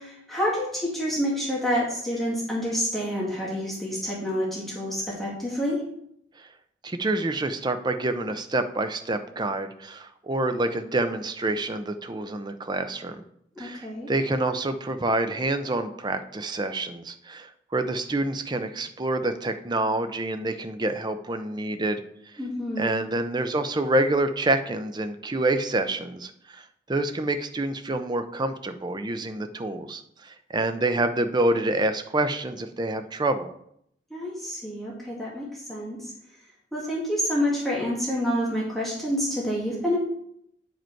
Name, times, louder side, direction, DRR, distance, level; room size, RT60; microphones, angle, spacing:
voice 1, 0.0-5.8 13.6-14.1 22.4-23.0 34.1-36.1 36.7-40.0, equal, ahead, -6 dB, 1.9 m, -28 dB
voice 2, 6.8-13.2 13.6-22.4 22.8-33.5, right 2 dB, 25° right, 9 dB, 0.5 m, -27 dB
9.0 x 5.1 x 4.5 m, 0.72 s
head